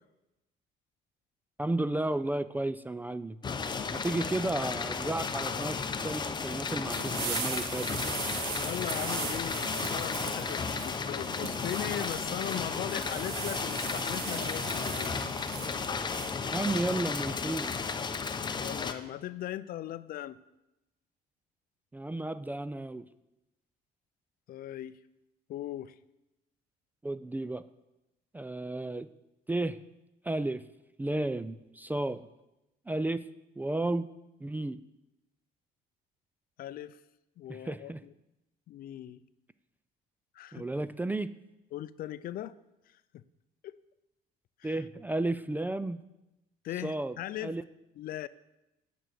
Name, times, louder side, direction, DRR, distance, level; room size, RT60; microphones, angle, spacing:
voice 1, 1.6-3.4 3.9-7.9 16.4-17.7 21.9-23.0 27.0-27.6 28.3-29.1 29.5-29.8 30.2-30.6 31.0-32.2 32.9-33.2 33.6-34.1 34.4-34.8 37.5-38.0 40.5-41.3 44.6-46.0 46.8-47.2 47.4-47.6, right 2 dB, 10° right, 14 dB, 0.3 m, -33 dB
sound 1, 3.4-18.9, left 5 dB, 25° left, 0.7 m, -34 dB
sound 2, 6.9-16.3, right 6 dB, 75° right, 1.4 m, -39 dB
voice 2, 8.6-15.2 18.6-20.4 24.5-25.0 25.5-25.9 36.6-37.0 37.4-38.1 38.7-39.2 40.3-40.7 41.7-42.6 43.1-43.2 43.6-43.8 44.6-44.8 46.6-47.5 48.0-48.3, left 12 dB, 60° left, 16 dB, 0.5 m, -39 dB
9.3 x 6.2 x 7.6 m, 0.94 s
cardioid pair, 110°, 17 cm